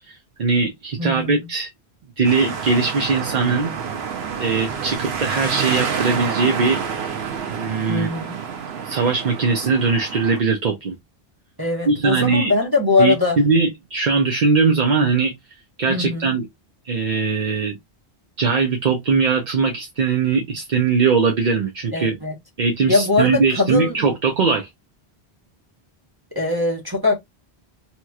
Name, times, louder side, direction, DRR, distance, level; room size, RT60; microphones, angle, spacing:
voice 1, 0.1-1.7 2.2-3.7 4.4-6.8 7.5-8.1 8.8-10.9 11.9-12.5 13.0-13.1 13.4-15.3 15.8-16.5 16.8-17.8 18.4-22.2 22.6-24.7, right 4 dB, 50° right, 0.7 m, -20 dB
voice 2, 1.0-1.4 7.9-8.4 11.6-13.4 15.9-16.3 21.9-22.3 22.9-23.9 26.3-27.2, left 3 dB, 20° right, 1.0 m, -21 dB
sound 1, 2.2-10.4, right 6 dB, 80° right, 1.0 m, -28 dB
2.9 x 2.9 x 2.3 m
omnidirectional pair, 1.1 m